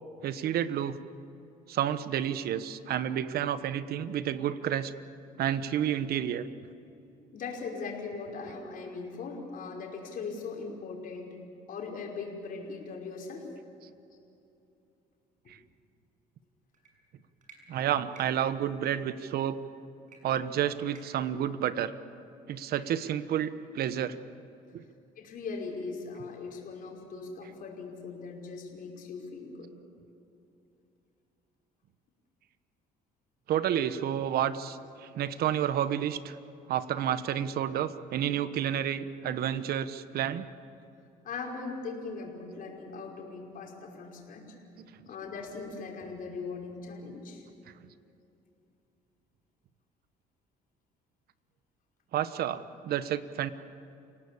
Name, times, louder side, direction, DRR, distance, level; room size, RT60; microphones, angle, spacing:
voice 1, 0.2-0.9 1.7-4.9 5.4-6.5 15.5-15.6 17.7-19.6 20.2-21.9 22.5-24.2 24.7-24.8 33.5-36.4 36.7-40.5 44.8-45.1 52.1-53.5, right 10 dB, 65° right, 13 dB, 1.2 m, -30 dB
voice 2, 7.3-11.4 11.7-13.5 25.2-29.7 41.2-44.4 45.1-47.5, left 4 dB, 55° left, -1 dB, 5.3 m, -39 dB
sound 1, 16.7-16.9 17.4-17.6 18.1-18.3 18.8-18.9 20.1-20.2 20.4-20.5 20.9-21.3, right 5 dB, 50° right, 6.9 m, -54 dB
29.0 x 18.0 x 8.5 m, 2.8 s
cardioid pair, 110°, 17 cm